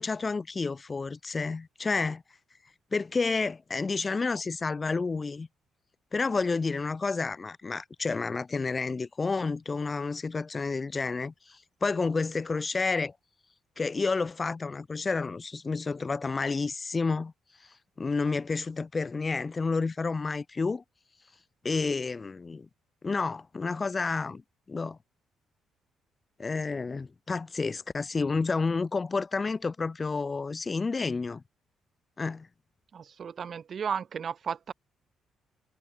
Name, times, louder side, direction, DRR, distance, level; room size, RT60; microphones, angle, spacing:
voice 1, 0.0-2.2 2.9-5.5 6.1-13.1 13.8-17.3 18.0-20.8 21.6-22.7 23.0-24.4 24.7-25.0 26.4-31.4 32.2-32.5, left 4 dB, 30° left, 1.2 m, -30 dB
voice 2, 32.9-34.7, right 7 dB, 50° right, 2.2 m, -34 dB
cardioid pair, 90°, 0 cm